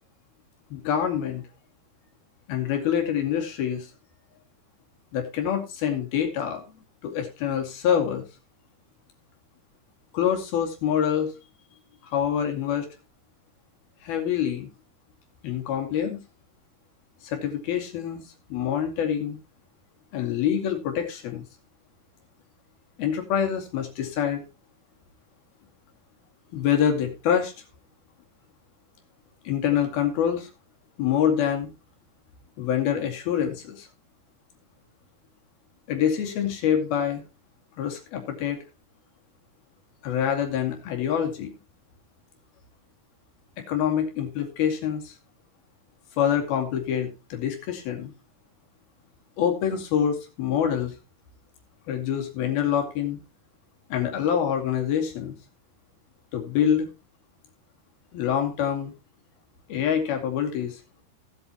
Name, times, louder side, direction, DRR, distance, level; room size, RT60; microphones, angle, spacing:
voice 1, 0.7-1.4 2.5-3.9 5.1-6.6 7.0-8.2 10.1-11.3 12.1-12.9 14.0-14.7 15.4-16.2 17.2-18.2 18.5-19.4 20.1-21.4 23.0-24.4 26.5-27.5 29.5-30.5 31.0-31.7 32.6-33.9 35.9-37.2 37.8-38.6 40.0-41.6 43.6-45.1 46.2-48.1 49.4-50.9 51.9-53.2 53.9-55.3 56.3-56.9 58.1-58.9 59.7-60.8, left 9 dB, 70° left, 3 dB, 4.1 m, -26 dB
17.5 x 8.2 x 2.9 m, 0.29 s
omnidirectional pair, 4.6 m